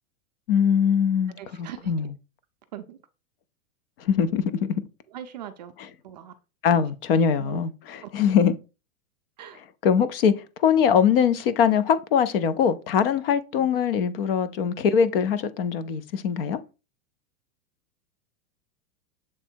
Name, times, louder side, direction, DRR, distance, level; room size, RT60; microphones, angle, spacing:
voice 1, 0.5-2.1 4.0-4.4 4.7-4.8 6.6-8.6 9.8-10.3 10.6-16.6, left 7 dB, 45° left, 0.6 m, -22 dB
voice 2, 1.4-1.9 2.7-3.0 5.1-5.7 6.0-6.3 7.4-7.6 8.0-8.1 9.4-9.6 13.6-13.7, right 11 dB, 35° right, 0.4 m, -40 dB
7.2 x 3.3 x 4.4 m
supercardioid pair, 175°, 40 cm